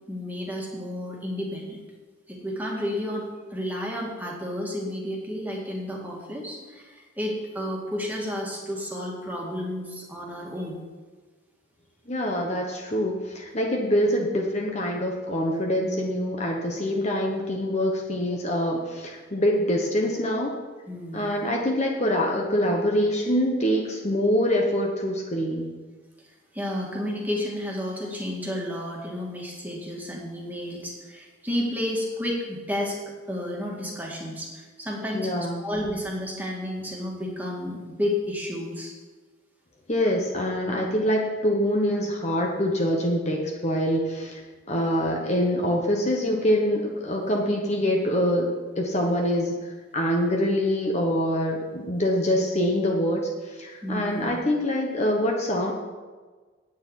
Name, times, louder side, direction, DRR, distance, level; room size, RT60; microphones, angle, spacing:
voice 1, 0.1-1.8 2.3-10.8 20.9-21.3 26.5-33.0 33.3-35.3 35.6-38.9 53.8-54.3, left 1 dB, 10° right, -2 dB, 1.9 m, -31 dB
voice 2, 12.1-20.6 21.1-25.7 35.1-35.7 39.9-44.4 44.7-55.7, equal, 30° left, 0 dB, 1.1 m, -25 dB
9.4 x 6.7 x 8.2 m, 1.4 s
head